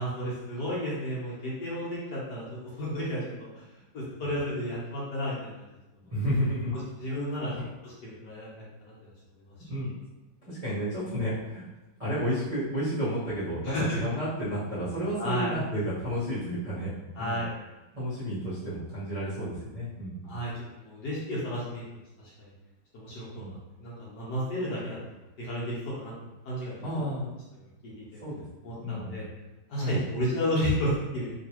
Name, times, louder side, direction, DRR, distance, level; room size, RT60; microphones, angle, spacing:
voice 1, 0.0-2.4 2.8-3.6 3.9-5.6 6.7-7.5 7.8-8.5 8.8-8.9 13.6-14.0 15.2-15.6 17.2-17.5 20.2-21.8 22.4-22.5 22.9-25.0 25.4-26.1 26.4-27.1 27.8-28.2 28.6-29.2 29.7-31.3, equal, 60° left, -7 dB, 1.4 m, -32 dB
voice 2, 6.1-6.8 7.5-7.6 9.7-9.9 10.4-11.6 12.0-16.9 17.2-17.4 17.9-20.3 23.3-23.5 26.8-27.3 28.2-28.4 28.8-29.2 29.7-30.0, equal, 25° right, -13 dB, 0.8 m, -31 dB
3.1 x 2.9 x 2.9 m, 1.0 s
omnidirectional pair, 2.2 m